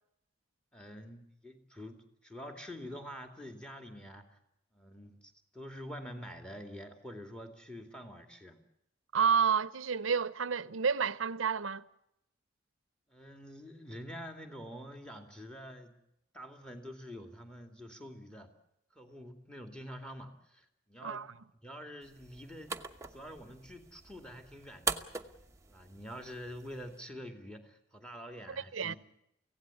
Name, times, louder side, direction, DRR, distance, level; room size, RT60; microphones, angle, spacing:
voice 1, 0.7-4.4 4.7-8.6 13.1-16.0 16.3-18.5 18.9-21.2 21.6-22.8 23.1-25.1 25.7-29.0, equal, 5° left, 2.4 m, -47 dB
voice 2, 9.1-11.8 21.0-21.3 28.6-28.9, right 6 dB, 90° right, 0.8 m, -30 dB
sound 1, 22.0-27.0, right 5 dB, 15° right, 1.0 m, -42 dB
24.5 x 17.0 x 8.5 m
head